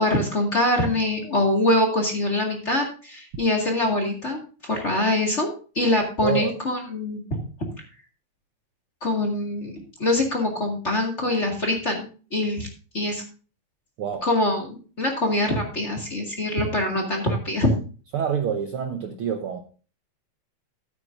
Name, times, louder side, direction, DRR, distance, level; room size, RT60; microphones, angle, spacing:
voice 1, 0.0-5.5 5.8-7.4 9.0-9.7 10.0-12.1 12.3-12.7 12.9-13.2 14.2-17.7, left 1 dB, 25° left, 1 dB, 2.0 m, -24 dB
voice 2, 6.2-6.5 14.0-14.3 18.1-19.6, right 7 dB, 65° right, 4 dB, 1.5 m, -26 dB
13.0 x 8.9 x 2.6 m, 0.37 s
omnidirectional pair, 3.3 m